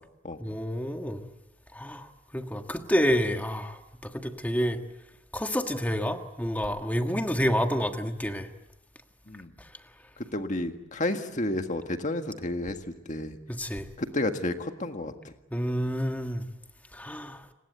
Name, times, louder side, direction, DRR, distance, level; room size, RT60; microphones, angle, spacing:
voice 1, 0.4-1.2 1.7-4.8 5.3-8.5 13.6-13.8 15.5-16.4 16.9-17.4, equal, 10° left, 5 dB, 1.5 m, -29 dB
voice 2, 10.3-12.8 13.1-13.4 14.0-15.3, left 1 dB, 40° left, 6 dB, 1.7 m, -31 dB
29.5 x 20.5 x 8.1 m, 0.97 s
head